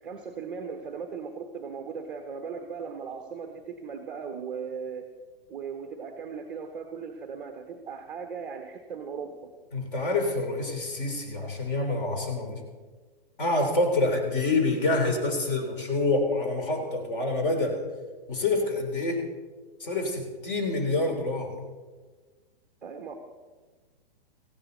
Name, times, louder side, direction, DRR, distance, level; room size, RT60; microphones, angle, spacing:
voice 1, 0.0-5.1 5.5-9.5 22.8-23.1, right 6 dB, 5° right, 3 dB, 0.4 m, -38 dB
voice 2, 9.7-12.6 13.4-17.8 18.3-19.2 19.8-21.6, left 2 dB, 60° left, 4 dB, 3.6 m, -27 dB
18.5 x 15.5 x 4.1 m, 1.4 s
hypercardioid pair, 160°, 30 cm